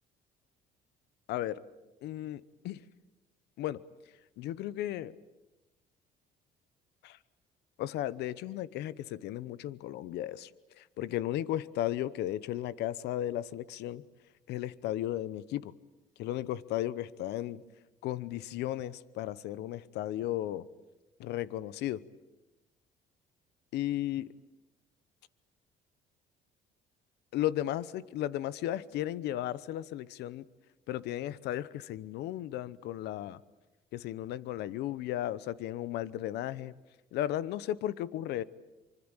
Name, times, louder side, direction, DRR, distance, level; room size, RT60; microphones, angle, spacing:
voice 1, 1.3-1.6 2.0-2.8 3.6-3.8 4.4-5.2 7.0-7.2 7.8-10.5 10.8-14.0 14.5-15.7 16.2-17.6 18.0-20.7 21.2-22.0 23.7-24.3 27.3-30.5 30.9-33.4 33.9-36.7 37.1-38.4, left 13 dB, 80° left, 18 dB, 0.9 m, -35 dB
25.0 x 24.5 x 8.9 m, 1.1 s
cardioid pair, 110°, 17 cm